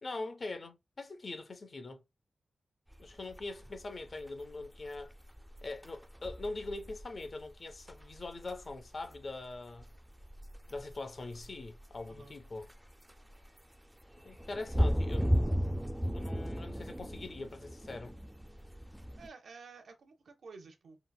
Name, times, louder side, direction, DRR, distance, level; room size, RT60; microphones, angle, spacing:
voice 1, 0.0-2.0 3.0-5.1 5.6-9.9 10.7-12.7 14.2-15.4 16.1-18.2, left 2 dB, 50° left, 0.5 m, -42 dB
sound 1, 2.9-19.3, equal, 5° right, 0.3 m, -36 dB
voice 2, 19.2-21.0, right 4 dB, 85° right, 0.6 m, -52 dB
3.8 x 2.0 x 2.2 m
wide cardioid pair, 95°, 0 cm